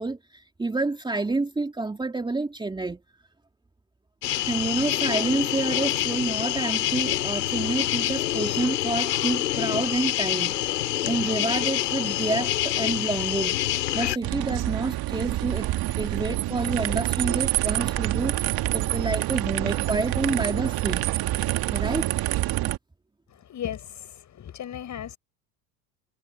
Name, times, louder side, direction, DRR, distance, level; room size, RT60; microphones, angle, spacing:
voice 1, 0.0-3.0 4.5-10.6 11.0-13.6 13.9-15.7 16.0-18.4 18.7-21.1 21.7-22.1, right 3 dB, 10° right, 2.7 m, -28 dB
sound 1, 4.2-14.2, left 14 dB, 90° left, 3.0 m, -26 dB
sound 2, 14.2-22.8, right 16 dB, 50° right, 2.1 m, -27 dB
voice 2, 23.3-25.2, left 10 dB, 40° left, 7.6 m, -36 dB
hypercardioid pair, 100°, 47 cm